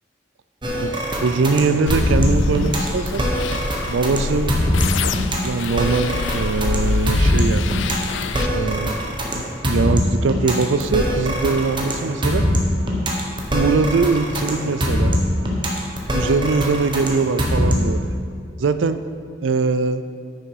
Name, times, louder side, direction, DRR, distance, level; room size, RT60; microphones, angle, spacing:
sound 1, 0.6-18.0, equal, 25° right, 1.3 m, -22 dB
voice 1, 0.8-3.2 3.9-4.6 5.4-7.8 8.5-9.0 9.3-12.5 13.5-15.2 16.1-18.1 18.6-19.0 19.4-20.0, right 4 dB, 90° right, 11 dB, 0.4 m, -21 dB
sound 2, 1.9-8.5, left 4 dB, 85° left, 0.5 m, -25 dB
10.0 x 6.5 x 4.8 m, 2.3 s
head